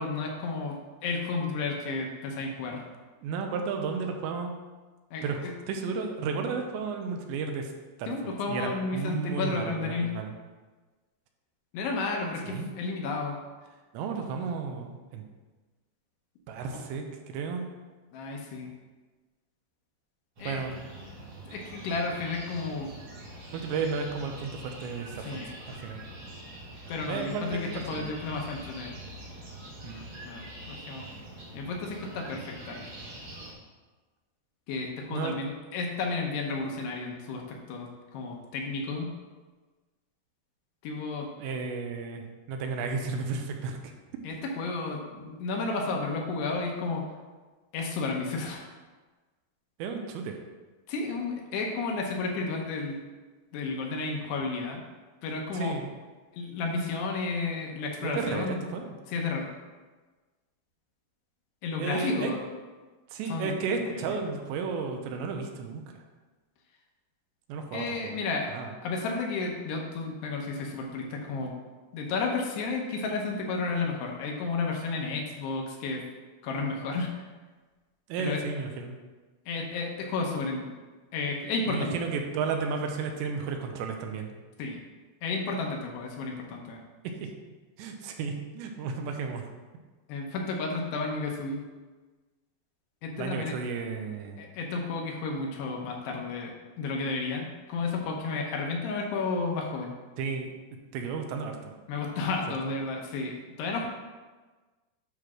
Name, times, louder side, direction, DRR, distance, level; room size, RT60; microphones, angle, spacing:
voice 1, 0.0-2.8 5.1-5.5 8.1-10.2 11.7-13.4 16.7-16.8 18.1-18.7 20.4-20.6 21.5-22.9 25.2-25.6 26.9-28.9 30.2-31.1 31.5-32.8 34.7-39.2 40.8-41.3 44.2-47.0 47.7-48.7 50.9-53.0 53.5-54.8 55.2-55.8 56.3-58.6 59.1-59.5 61.6-62.4 63.3-63.5 63.9-64.2 67.7-68.5 68.8-71.5 71.9-76.0 76.4-77.2 78.2-78.4 79.5-80.7 81.1-81.9 84.6-84.8 85.2-86.8 90.1-91.6 93.0-93.6 94.4-99.9 101.9-103.9, left 3 dB, 75° left, 0 dB, 2.9 m, -32 dB
voice 2, 3.2-4.6 5.2-7.7 8.0-8.1 8.5-10.4 12.5-12.7 13.9-15.2 16.5-17.7 20.4-20.8 23.5-25.4 25.7-26.1 27.1-28.1 29.8-30.1 35.1-35.4 41.4-43.9 49.8-50.3 55.5-55.9 58.0-58.9 61.8-62.3 63.1-65.8 67.5-68.2 68.5-68.7 78.1-79.0 81.7-84.3 87.2-87.3 87.8-89.4 93.2-94.4 100.2-100.5 100.9-101.8 102.6-102.7, right 5 dB, 85° right, 4 dB, 3.0 m, -33 dB
sound 1, 20.4-33.5, right 1 dB, 55° right, 1.4 m, -44 dB
9.5 x 3.3 x 6.0 m, 1.3 s
omnidirectional pair, 5.1 m